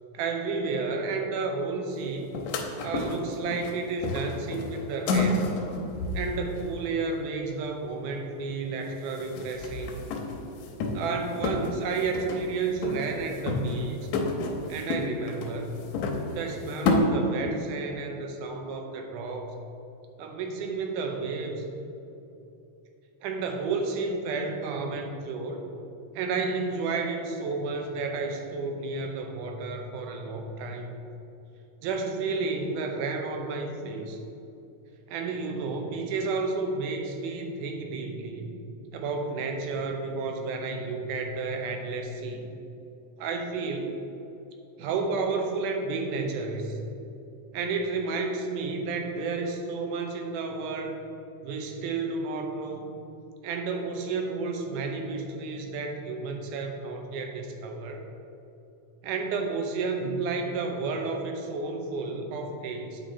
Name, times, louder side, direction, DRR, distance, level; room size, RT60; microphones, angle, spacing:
voice 1, 0.1-2.3 2.8-5.5 6.1-10.1 10.9-14.0 14.7-15.7 16.3-19.5 20.2-21.7 23.2-25.6 26.1-31.0 31.8-34.2 35.1-38.5 38.9-42.5 43.2-43.9 44.8-46.8 47.5-51.0 51.4-53.0 53.4-58.0 59.0-63.0, right 4 dB, 85° right, 4 dB, 2.2 m, -31 dB
sound 1, 2.3-3.7 4.0-6.7 8.8-8.9 9.1-11.2 11.4-12.5 12.8-13.9 14.1-17.0, left 3 dB, 80° left, 2.1 m, -30 dB
7.6 x 4.9 x 4.1 m, 2.8 s
omnidirectional pair, 3.6 m